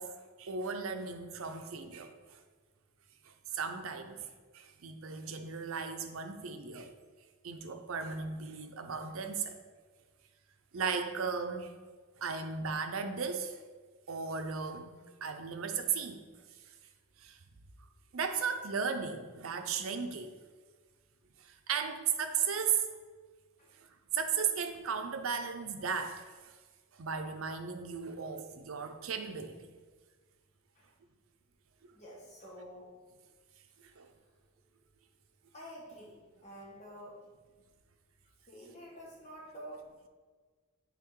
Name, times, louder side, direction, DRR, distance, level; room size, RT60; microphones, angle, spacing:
voice 1, 0.0-2.4 3.3-4.3 4.5-6.9 7.4-9.6 10.7-11.7 12.2-13.6 14.1-16.2 17.2-17.4 18.1-20.3 21.4-22.9 24.1-26.5 26.9-29.7 31.8-31.9 34.0-34.1, right 6 dB, 80° right, 7 dB, 0.6 m, -36 dB
voice 2, 31.9-32.9 34.0-34.2 35.5-37.2 38.5-39.9, equal, 35° left, -4 dB, 1.2 m, -49 dB
5.9 x 3.5 x 4.6 m, 1.5 s
head